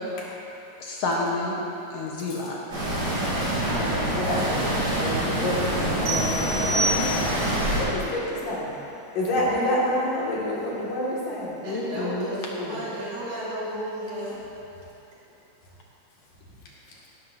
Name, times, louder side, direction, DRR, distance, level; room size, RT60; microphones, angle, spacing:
voice 1, 0.8-1.6 1.9-2.6 11.7-12.3, left 2 dB, 60° left, -3 dB, 2.0 m, -29 dB
sound 1, 2.7-7.8, right 1 dB, 35° right, 3.5 m, -26 dB
voice 2, 3.6-8.7 9.1-11.6 12.6-12.8, left 1 dB, 85° left, -6 dB, 3.8 m, -28 dB
sound 2, 6.1-7.6, right 1 dB, 55° right, 1.0 m, -28 dB
voice 3, 11.6-14.4, right 1 dB, 75° right, -9 dB, 4.5 m, -33 dB
17.0 x 12.0 x 2.7 m, 3.0 s
omnidirectional pair, 3.5 m